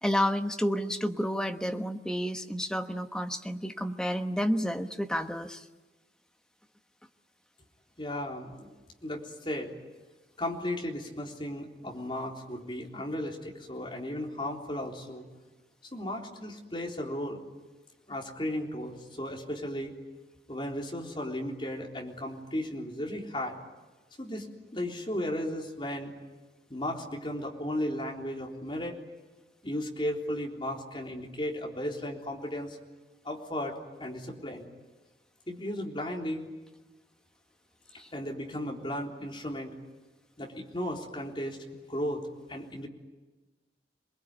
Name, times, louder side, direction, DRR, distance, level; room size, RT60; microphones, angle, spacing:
voice 1, 0.0-5.6 38.0-38.1, equal, 5° left, 6 dB, 1.2 m, -30 dB
voice 2, 8.0-8.7 9.0-9.7 10.4-15.3 15.9-17.4 18.1-19.9 20.5-23.6 24.2-24.5 24.7-26.1 26.7-29.0 29.6-32.8 33.2-34.7 35.5-36.4 38.1-39.7 40.4-41.6 41.9-42.2 42.5-42.9, left 1 dB, 30° left, 0 dB, 3.7 m, -35 dB
27.5 x 21.0 x 9.8 m, 1.2 s
head